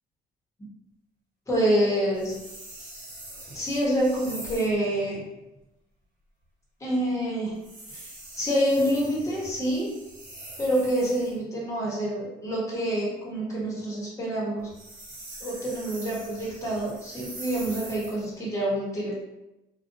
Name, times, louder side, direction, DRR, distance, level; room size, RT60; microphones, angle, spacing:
voice 1, 1.5-2.4 3.5-5.2 6.8-7.6 8.4-9.9 10.6-14.7 15.4-19.1, equal, 20° left, -5 dB, 1.0 m, -27 dB
sound 1, 2.1-4.8 7.5-11.4 14.6-18.3, right 1 dB, 55° right, 0.9 m, -43 dB
2.5 x 2.3 x 2.6 m, 0.96 s
cardioid pair, 110°, 17 cm